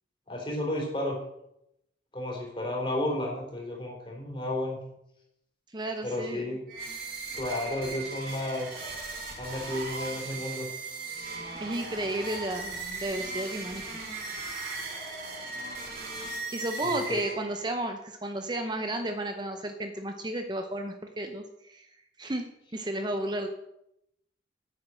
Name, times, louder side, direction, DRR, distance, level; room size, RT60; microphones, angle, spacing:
voice 1, 0.3-1.2 2.1-4.8 6.0-6.6 7.3-8.8 9.4-10.7 16.8-17.2, left 1 dB, 30° left, -1 dB, 3.7 m, -32 dB
voice 2, 5.7-6.5 11.3-13.9 14.2-14.3 16.5-21.9 22.2-22.4 22.7-23.5, right 1 dB, 25° right, 5 dB, 0.8 m, -33 dB
sound 1, 6.7-17.7, right 3 dB, 50° right, 3.3 m, -38 dB
9.4 x 8.7 x 6.3 m, 0.81 s
head